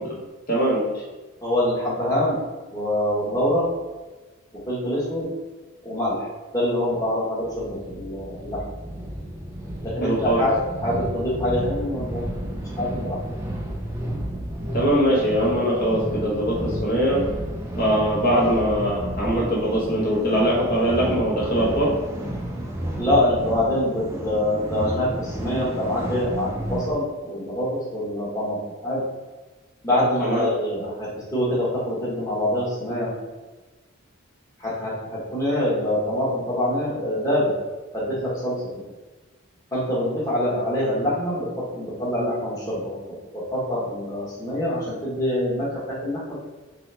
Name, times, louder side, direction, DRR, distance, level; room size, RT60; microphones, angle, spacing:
voice 1, 0.5-1.0 10.0-10.4 14.7-17.2 17.8-21.9 30.2-30.5, equal, 45° left, -6 dB, 1.1 m, -22 dB
voice 2, 1.4-2.4 2.7-3.7 4.7-5.3 5.8-8.6 9.8-10.5 10.8-13.2 23.0-29.1 29.8-33.1 34.6-37.5 37.9-38.6 39.7-43.0 43.3-46.3, left 1 dB, 15° left, -8 dB, 1.2 m, -25 dB
sound 1, 7.5-26.9, right 1 dB, 10° right, 0.5 m, -32 dB
3.9 x 3.3 x 3.3 m, 1.2 s
head